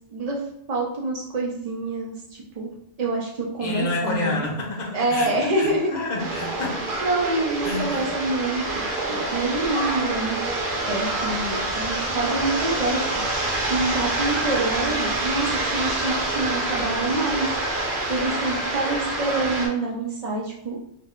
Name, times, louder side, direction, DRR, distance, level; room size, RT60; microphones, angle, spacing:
voice 1, 0.1-0.4 0.7-2.2 2.6-2.7 3.0-4.5 4.9-5.9 7.0-10.4 10.9-13.0 13.4-17.5 18.1-20.8, right 2 dB, 80° right, -3 dB, 0.3 m, -26 dB
voice 2, 3.6-6.9 7.6-8.1, left 2 dB, 50° left, -1 dB, 0.6 m, -29 dB
sound 1, 6.2-19.7, right 2 dB, 55° right, 0.7 m, -27 dB
2.6 x 2.1 x 3.5 m, 0.77 s
omnidirectional pair, 1.3 m